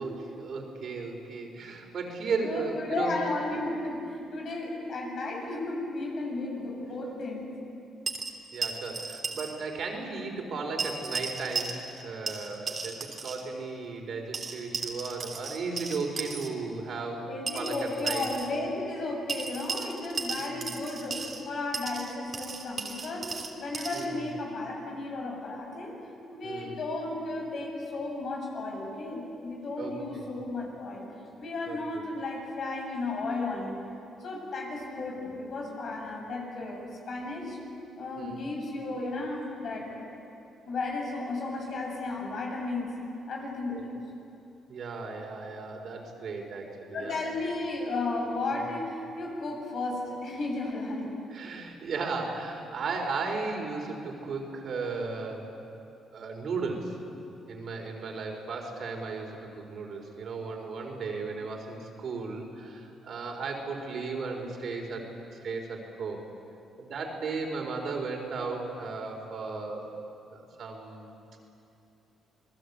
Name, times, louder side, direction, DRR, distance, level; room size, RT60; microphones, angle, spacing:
voice 1, 0.0-3.2 8.5-17.3 17.5-18.2 20.4-20.6 23.9-24.3 26.4-26.8 29.8-30.3 31.7-31.8 38.2-38.5 43.7-43.9 44.7-47.2 48.5-48.6 51.3-55.6 56.1-57.0 57.5-65.1 65.4-66.2 66.8-69.9 70.3-71.2, right 4 dB, 60° right, 2 dB, 4.6 m, -35 dB
voice 2, 2.3-7.5 17.3-23.3 23.6-25.9 26.3-31.1 31.4-33.8 34.2-36.8 37.1-37.6 38.0-40.0 40.7-42.9 43.3-44.0 46.9-51.1, left 2 dB, 60° left, -1 dB, 8.0 m, -34 dB
sound 1, 8.1-9.5 9.8-9.9 10.8-12.0 12.3-13.4 14.3-16.5 17.5-18.5 19.3-21.4 21.7-24.1, right 4 dB, 40° right, 3.4 m, -35 dB
27.5 x 20.0 x 8.6 m, 2.8 s
cardioid pair, 90°, 0 cm